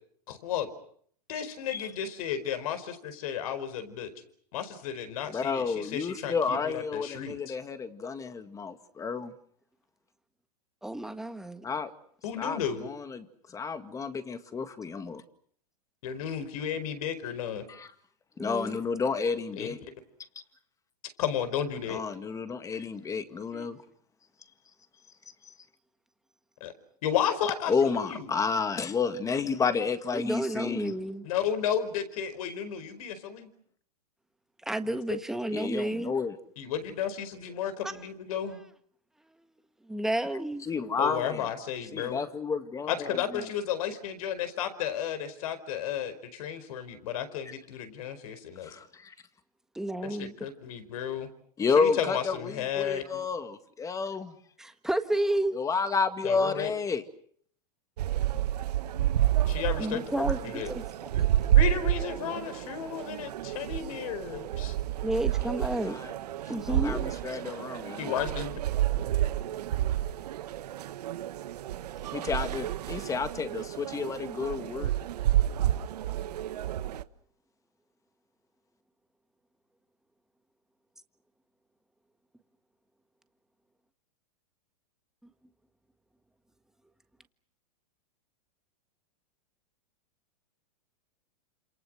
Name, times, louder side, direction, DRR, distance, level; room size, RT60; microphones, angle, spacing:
voice 1, 0.3-0.7 1.3-4.1 4.5-7.5 12.2-12.9 16.0-17.6 19.6-19.7 21.2-22.0 26.6-26.7 27.0-28.3 31.2-33.5 34.9-35.2 36.6-38.6 41.0-42.2 42.9-48.8 50.2-51.3 51.8-53.2 56.2-56.7 59.5-60.7 61.5-64.7 68.0-68.6, left 9 dB, 65° left, 11 dB, 4.7 m, -33 dB
voice 2, 5.3-9.3 11.6-11.9 12.4-15.2 17.7-17.9 18.4-19.8 21.9-23.8 25.4-25.5 27.7-30.9 35.5-36.4 40.6-41.5 41.9-43.5 48.6-49.1 51.6-54.4 55.5-57.0 65.6-66.1 66.7-68.3 72.1-74.9, left 5 dB, 15° left, 10 dB, 1.9 m, -31 dB
voice 3, 10.8-11.6 18.4-18.8 23.5-23.7 30.1-31.3 34.6-36.1 37.8-37.9 39.9-40.7 49.7-50.3 54.6-55.6 59.8-61.3 65.0-66.0 66.5-67.0, right 1 dB, ahead, 8 dB, 1.5 m, -31 dB
sound 1, 58.0-77.0, right 12 dB, 75° right, 1.2 m, -29 dB
28.0 x 27.5 x 6.3 m, 0.63 s
hypercardioid pair, 130°, 20 cm